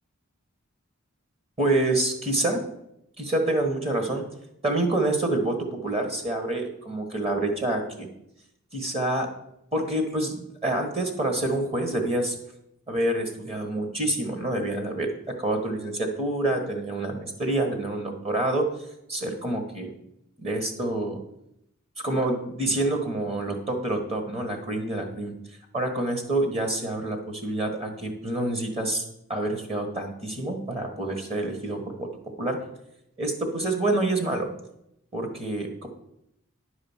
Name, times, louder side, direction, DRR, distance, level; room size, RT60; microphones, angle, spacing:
voice 1, 1.6-2.6 3.2-4.2 4.6-8.1 8.7-9.3 9.7-12.4 12.9-15.1 15.4-18.7 19.1-19.9 20.4-21.2 22.0-25.3 25.7-29.0 29.3-32.1 32.4-32.6 33.2-34.5 35.1-35.9, right 2 dB, 30° right, 4 dB, 1.3 m, -27 dB
10.5 x 4.9 x 7.2 m, 0.80 s
head